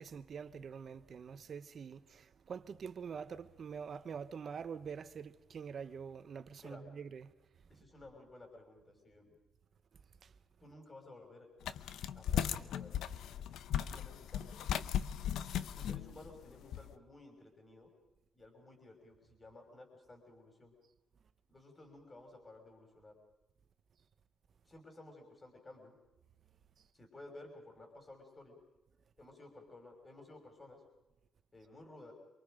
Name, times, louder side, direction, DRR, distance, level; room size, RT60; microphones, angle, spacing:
voice 1, 0.0-7.3 7.7-7.8 10.2-10.3 15.0-15.1 15.5-15.6, right 6 dB, 50° right, 1.2 m, -46 dB
voice 2, 7.7-9.3 10.6-11.5 12.1-13.0 13.8-14.6 15.7-17.9 18.3-20.7 21.5-23.1 24.7-25.9 26.9-28.6 29.2-30.8 31.5-32.1, left 2 dB, 25° left, 5.9 m, -55 dB
sound 1, 11.6-16.9, left 10 dB, 80° left, 0.8 m, -37 dB
27.0 x 23.5 x 5.1 m
cardioid pair, 90°, 0 cm